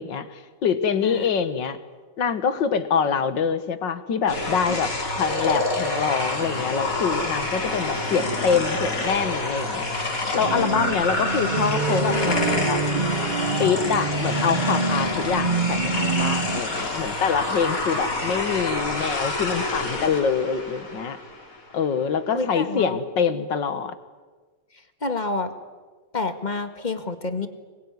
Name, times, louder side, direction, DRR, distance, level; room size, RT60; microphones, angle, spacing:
voice 1, 0.0-1.8 2.2-4.9 5.2-9.9 10.3-12.8 13.6-21.2 21.7-23.9, left 6 dB, 85° left, 12 dB, 2.2 m, -25 dB
sound 1, 4.3-21.6, left 2 dB, 50° left, 3.8 m, -28 dB
sound 2, 10.4-16.6, right 4 dB, 30° right, 0.9 m, -26 dB
voice 2, 22.3-23.0 25.0-25.5 26.1-27.5, left 3 dB, 25° left, 9 dB, 1.7 m, -28 dB
25.5 x 22.0 x 9.7 m, 1.3 s
omnidirectional pair, 1.9 m